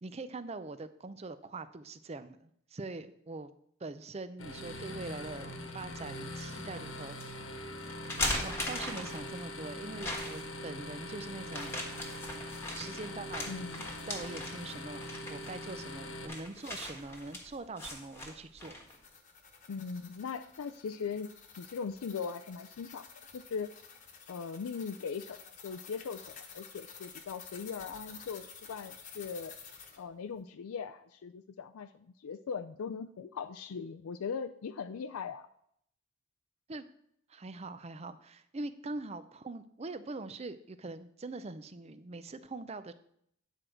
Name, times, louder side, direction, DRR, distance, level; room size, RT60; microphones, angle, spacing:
voice 1, 0.0-3.5 3.8-7.3 8.4-11.8 12.7-13.5 14.1-18.8 36.7-36.8 37.3-42.9, right 3 dB, 30° right, 12 dB, 0.5 m, -43 dB
sound 1, 4.4-16.3, left 1 dB, 60° left, 1.2 m, -43 dB
sound 2, 6.0-6.6 7.2-7.3 7.9-9.4 10.0-10.6 11.5-19.0, left 1 dB, 10° left, 1.4 m, -39 dB
voice 2, 13.5-13.9 19.7-23.7 24.3-29.5 30.0-35.5, left 6 dB, 80° left, 8 dB, 0.4 m, -40 dB
sound 3, 18.6-30.0, left 6 dB, 35° left, 1.1 m, -52 dB
9.9 x 4.6 x 6.3 m, 0.70 s
head